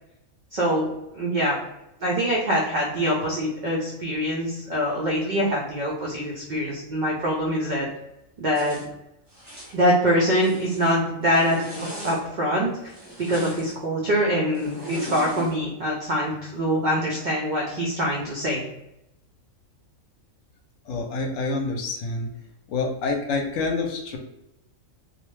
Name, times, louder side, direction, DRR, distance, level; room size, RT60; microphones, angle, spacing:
voice 1, 0.5-0.9 1.1-1.6 2.0-7.9 8.4-8.8 9.7-12.9 13.2-18.6, equal, 85° right, -3 dB, 0.4 m, -24 dB
Zipper (clothing), 8.5-8.9 9.3-9.8 10.2-10.9 11.3-12.2 12.9-13.7 14.5-15.5, equal, 20° right, 0.5 m, -38 dB
voice 2, 20.9-22.3 22.7-24.2, left 3 dB, 70° left, 2 dB, 0.9 m, -27 dB
2.6 x 2.0 x 3.0 m, 0.89 s
omnidirectional pair, 1.4 m